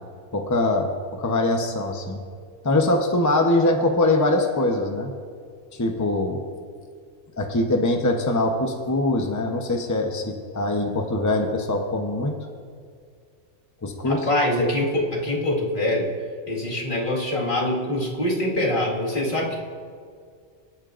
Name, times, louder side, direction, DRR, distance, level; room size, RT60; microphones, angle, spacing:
voice 1, 0.3-2.2 2.6-5.1 5.7-6.4 7.4-12.4 13.8-14.3, left 2 dB, 15° left, 3 dB, 0.8 m, -23 dB
voice 2, 14.1-16.1 16.5-19.6, left 1 dB, 45° left, -4 dB, 2.1 m, -24 dB
26.0 x 8.9 x 2.6 m, 2.1 s
omnidirectional pair, 1.2 m